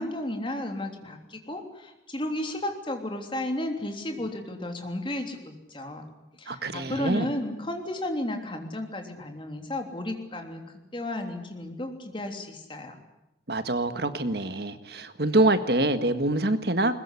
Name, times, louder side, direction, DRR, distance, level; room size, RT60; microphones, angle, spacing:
voice 1, 0.0-6.1 6.4-10.6 10.9-13.0, left 1 dB, 30° left, 4 dB, 3.3 m, -33 dB
voice 2, 6.5-7.3 13.5-16.9, right 2 dB, 65° right, 10 dB, 1.6 m, -25 dB
21.5 x 21.0 x 9.9 m, 0.92 s
head